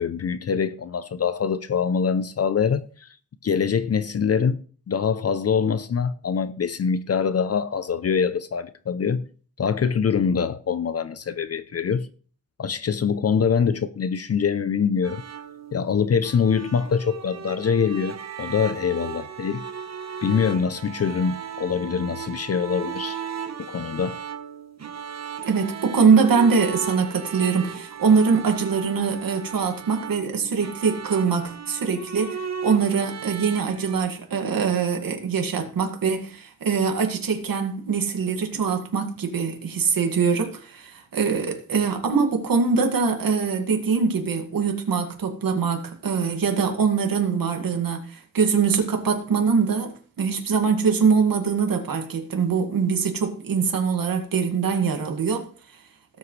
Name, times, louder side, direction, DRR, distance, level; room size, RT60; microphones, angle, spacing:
voice 1, 0.0-3.2 3.4-4.6 4.9-9.2 9.6-12.1 12.6-15.2 15.7-19.6 20.2-23.2 23.6-24.2, left 6 dB, 45° left, 0.6 m, -24 dB
sound 1, 15.0-34.0, right 7 dB, 50° right, 1.3 m, -36 dB
voice 2, 25.4-55.5, right 5 dB, 80° right, 2.2 m, -23 dB
18.0 x 7.9 x 3.3 m
wide cardioid pair, 125°, 34 cm